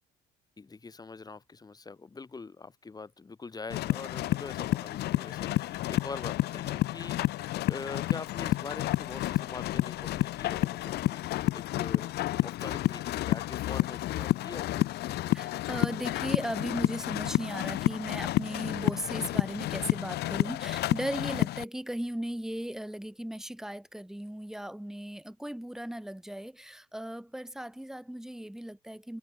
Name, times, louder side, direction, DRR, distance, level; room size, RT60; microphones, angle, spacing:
voice 1, 0.6-15.0, left 4 dB, 20° left, 5.2 m, -44 dB
sound 1, 3.7-21.6, left 16 dB, 75° left, 1.6 m, -30 dB
voice 2, 15.3-29.2, right 1 dB, 5° right, 2.1 m, -37 dB
cardioid pair, 110°, 17 cm